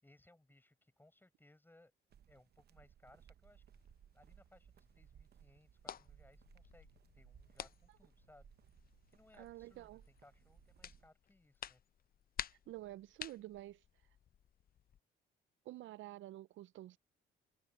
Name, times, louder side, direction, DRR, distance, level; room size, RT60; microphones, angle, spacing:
voice 1, 0.0-1.9 2.3-3.6 4.1-8.5 9.1-11.8, left 1 dB, 10° left, 6.8 m, -66 dB
sound 1, 2.1-11.1, right 9 dB, 55° right, 0.9 m, -64 dB
sound 2, 3.7-15.0, left 9 dB, 50° left, 0.6 m, -53 dB
voice 2, 9.4-10.0 12.7-13.8 15.6-17.0, right 15 dB, 75° right, 0.5 m, -49 dB
cardioid pair, 90°, 20 cm